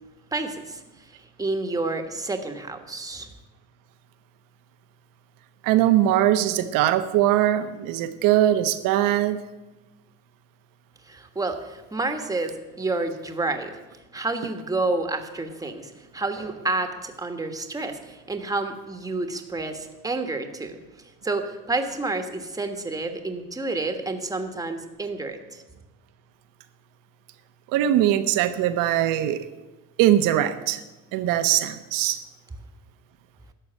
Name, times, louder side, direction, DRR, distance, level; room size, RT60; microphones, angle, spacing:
voice 1, 0.3-0.8 1.4-3.3 11.1-13.8 14.1-20.8 21.2-25.6, right 3 dB, 10° right, 6 dB, 1.3 m, -29 dB
voice 2, 5.6-9.4 27.7-29.4 30.0-30.8 31.1-32.2, right 12 dB, 85° right, 11 dB, 1.1 m, -21 dB
12.0 x 6.8 x 9.9 m, 1.1 s
cardioid pair, 125°, 32 cm